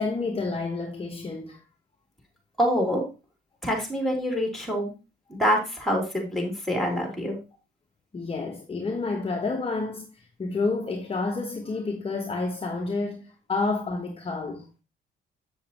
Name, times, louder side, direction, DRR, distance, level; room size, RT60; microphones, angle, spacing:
voice 1, 0.0-1.6 8.1-14.7, left 3 dB, 30° left, 1.0 m, -29 dB
voice 2, 2.6-3.0 3.6-4.9 5.3-7.4, equal, ahead, 3.0 m, -26 dB
7.2 x 7.1 x 2.9 m
cardioid pair, 90°, 20 cm